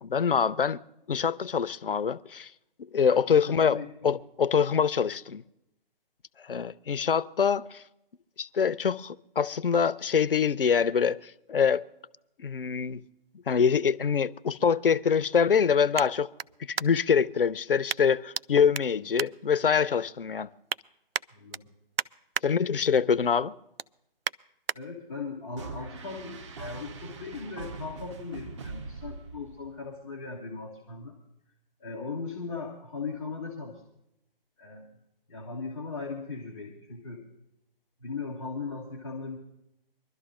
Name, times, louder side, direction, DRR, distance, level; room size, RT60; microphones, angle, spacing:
voice 1, 0.0-0.8 1.1-2.5 2.9-5.4 6.4-7.8 8.4-11.8 12.4-13.0 13.5-16.3 16.7-20.5 22.4-23.5, left 6 dB, 70° left, 0.6 m, -25 dB
voice 2, 3.3-3.9 18.8-19.1 21.3-21.6 24.7-31.2 31.8-33.8 34.6-34.9 35.3-37.2 38.0-39.4, left 4 dB, ahead, 0.4 m, -38 dB
sound 1, 13.1-17.2 17.9-18.4 18.7-20.0 20.4-20.8 21.1-22.5 22.9-23.1 23.5-24.8 25.3-25.4, right 7 dB, 80° right, 0.5 m, -36 dB
sound 2, 25.6-29.9, right 4 dB, 30° right, 0.9 m, -42 dB
25.0 x 12.5 x 2.5 m
figure-of-eight pair, 145°, 29 cm